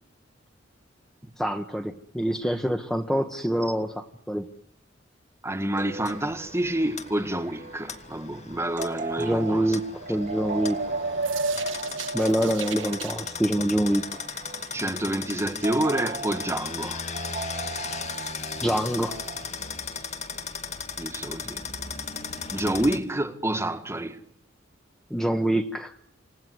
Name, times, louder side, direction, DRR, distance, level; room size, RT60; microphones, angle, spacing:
voice 1, 1.4-4.4 9.2-9.8 10.1-10.8 12.1-14.2 18.6-19.2 25.1-25.9, right 1 dB, ahead, 1.4 m, -25 dB
voice 2, 5.4-9.8 14.7-17.0 21.0-21.6 22.5-24.2, right 1 dB, 15° right, 1.9 m, -28 dB
sound 1, 5.8-19.5, right 4 dB, 45° right, 2.0 m, -40 dB
sound 2, 6.1-23.0, left 5 dB, 35° left, 2.3 m, -37 dB
sound 3, 9.9-13.1, right 3 dB, 85° right, 1.6 m, -31 dB
28.5 x 18.5 x 9.5 m
head